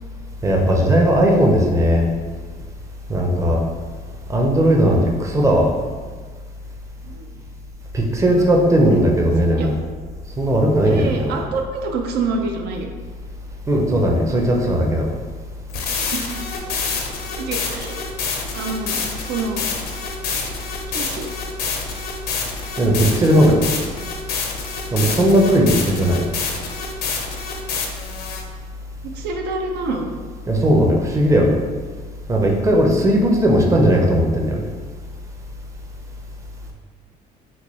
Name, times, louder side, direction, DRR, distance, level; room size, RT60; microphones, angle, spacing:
voice 1, 0.4-2.1 3.1-3.6 4.3-5.7 7.9-9.8 10.4-11.4 13.7-15.1 22.8-23.6 24.9-26.2 30.5-31.6 32.3-34.7, equal, 20° right, 0 dB, 0.5 m, -17 dB
voice 2, 10.9-12.9 16.1-16.5 17.4-18.1 18.5-19.0 19.3-19.7 20.9-21.3 29.1-30.1, right 3 dB, 75° right, 3 dB, 0.4 m, -27 dB
sound 1, 15.7-28.4, left 5 dB, 65° left, 0.6 m, -27 dB
4.3 x 2.2 x 3.0 m, 1.5 s
cardioid pair, 110°, 17 cm